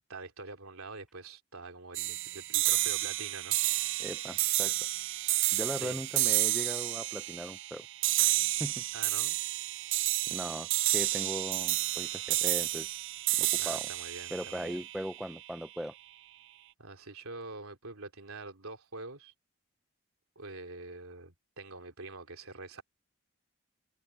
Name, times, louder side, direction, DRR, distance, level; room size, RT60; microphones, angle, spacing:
voice 1, 0.1-3.6 5.7-6.0 8.9-9.4 13.6-14.8 16.8-19.3 20.3-22.8, right 3 dB, 75° right, 3.2 m, -45 dB
sound 1, 1.9-15.4, right 18 dB, 60° right, 0.5 m, -30 dB
voice 2, 4.0-4.7 5.5-7.9 8.6-8.8 10.3-13.0 13.4-13.9 14.3-15.9, equal, ahead, 0.4 m, -39 dB
head